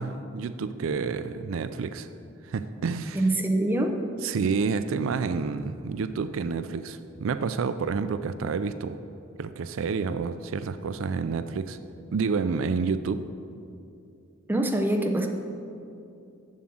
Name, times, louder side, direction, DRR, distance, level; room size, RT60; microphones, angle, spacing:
voice 1, 0.0-2.1 2.4-3.2 4.2-9.0 9.4-11.8 12.1-13.2, right 5 dB, 75° right, 11 dB, 0.4 m, -29 dB
voice 2, 3.1-4.0 14.5-15.3, right 1 dB, 10° right, 3 dB, 0.6 m, -24 dB
7.5 x 7.1 x 7.7 m, 2.6 s
head